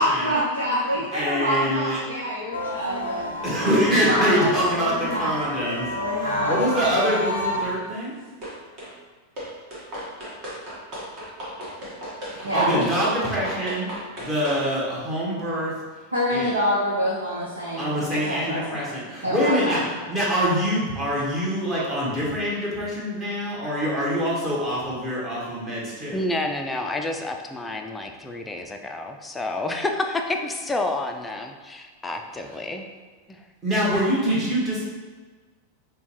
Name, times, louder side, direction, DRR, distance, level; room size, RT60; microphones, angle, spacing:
voice 1, 0.0-3.3 4.0-5.3 5.9-6.7 12.4-12.9 16.1-18.8 19.2-20.0, equal, 75° right, -8 dB, 0.9 m, -26 dB
voice 2, 1.1-2.0 3.4-5.9 6.1-8.1 12.3-13.9 14.2-15.7 16.3-16.5 17.8-19.8 20.1-26.2 33.6-34.8, equal, 20° right, -7 dB, 1.2 m, -25 dB
sound 1, 2.5-7.7, left 1 dB, 75° left, 0.5 m, -30 dB
sound 2, 8.4-8.9 9.4-14.7, equal, 40° right, 1.3 m, -36 dB
voice 3, 26.1-32.9 33.3-33.4, left 2 dB, 10° left, 4 dB, 0.4 m, -29 dB
5.2 x 2.2 x 3.0 m, 1.4 s
figure-of-eight pair, 90°, 0 cm